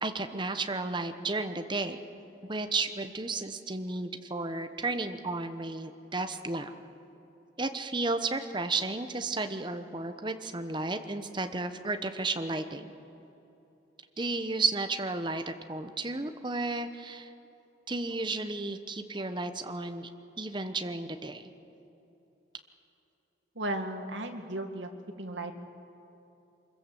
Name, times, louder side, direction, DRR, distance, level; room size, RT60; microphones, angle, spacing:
voice 1, 0.0-2.0 2.5-6.7 7.6-12.9 14.2-17.3 17.9-20.1 20.4-21.5, right 3 dB, 25° right, 8 dB, 1.0 m, -33 dB
voice 2, 23.6-24.9 25.2-25.5, right 1 dB, 85° right, 5 dB, 2.0 m, -35 dB
24.5 x 22.0 x 7.7 m, 2.9 s
head